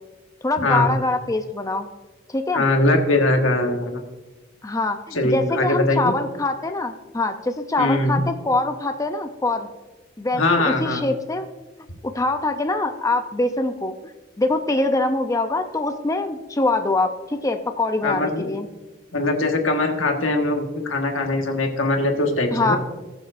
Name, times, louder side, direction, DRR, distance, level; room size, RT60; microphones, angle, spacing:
voice 1, 0.4-1.9 2.3-2.6 4.6-9.7 10.2-11.5 12.0-18.7 22.5-22.8, left 2 dB, 15° left, 6 dB, 0.5 m, -24 dB
voice 2, 2.5-4.0 5.1-6.1 7.8-8.2 10.3-11.0 18.0-18.5 19.1-22.8, left 2 dB, 90° left, 3 dB, 1.5 m, -21 dB
19.5 x 7.1 x 2.5 m, 1.1 s
head